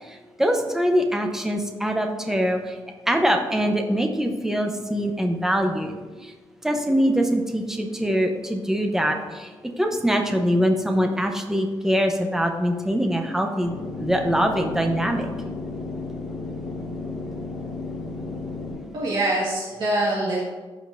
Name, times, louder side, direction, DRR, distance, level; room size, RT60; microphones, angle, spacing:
voice 1, 0.0-2.8 3.1-6.3 6.6-15.3, equal, 5° right, 4 dB, 0.7 m, -23 dB
sound 1, 13.6-18.7, left 3 dB, 45° left, 2.3 m, -33 dB
voice 2, 18.9-20.4, right 1 dB, 50° right, -7 dB, 1.6 m, -24 dB
14.0 x 5.1 x 2.6 m, 1.4 s
wide cardioid pair, 150°, 10 cm